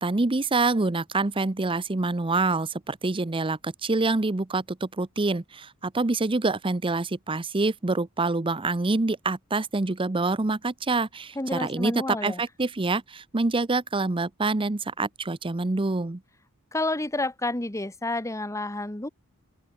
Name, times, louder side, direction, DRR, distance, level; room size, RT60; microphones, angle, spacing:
voice 1, 0.0-16.2, right 3 dB, 25° right, 0.7 m, -26 dB
voice 2, 11.3-12.4 16.7-19.1, left 2 dB, 15° left, 1.4 m, -29 dB
open air
head